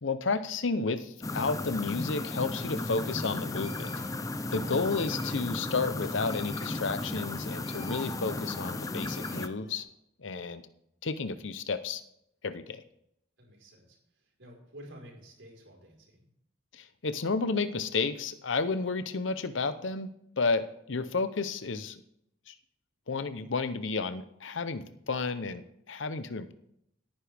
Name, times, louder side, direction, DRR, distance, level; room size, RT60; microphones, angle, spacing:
voice 1, 0.0-3.9 4.5-9.9 10.2-10.6 11.0-12.0 12.4-12.8 16.7-20.1 20.4-22.0 22.5-22.6 23.1-26.5, left 4 dB, 85° left, 12 dB, 0.8 m, -32 dB
sound 1, 1.2-9.5, left 2 dB, 15° left, 0.5 m, -35 dB
sound 2, 3.3-9.8, left 1 dB, 70° left, 3.6 m, -52 dB
voice 2, 13.4-16.2, equal, 90° right, 0 dB, 4.7 m, -51 dB
18.0 x 9.8 x 3.5 m, 0.76 s
head